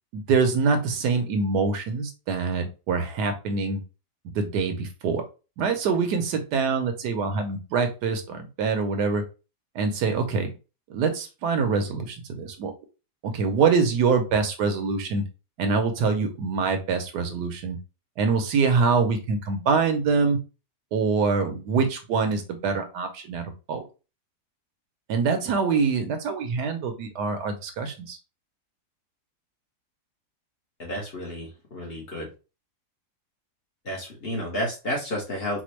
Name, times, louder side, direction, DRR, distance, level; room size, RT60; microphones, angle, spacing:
voice 1, 0.1-3.8 4.3-5.2 5.6-9.2 9.7-10.5 10.9-12.7 13.2-15.2 15.6-17.8 18.2-20.4 20.9-23.8 25.1-28.2, right 5 dB, 80° right, 6 dB, 1.3 m, -25 dB
voice 2, 30.8-32.3 33.8-35.6, equal, 40° left, -2 dB, 1.1 m, -31 dB
4.2 x 2.3 x 3.0 m, 0.31 s
omnidirectional pair, 1.8 m